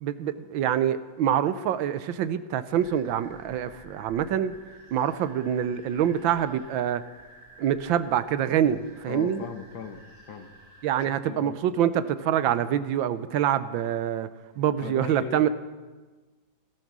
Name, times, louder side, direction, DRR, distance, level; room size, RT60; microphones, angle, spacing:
voice 1, 0.0-4.6 4.9-7.0 7.6-9.4 10.8-14.3 14.6-15.5, right 10 dB, 85° right, 13 dB, 1.5 m, -25 dB
sound 1, 2.7-10.9, right 1 dB, 50° right, 6.6 m, -52 dB
voice 2, 9.1-10.0 10.3-10.5 11.0-11.6 14.8-15.5, left 6 dB, 85° left, 7 dB, 2.0 m, -38 dB
17.0 x 12.0 x 6.2 m, 1.3 s
omnidirectional pair, 2.1 m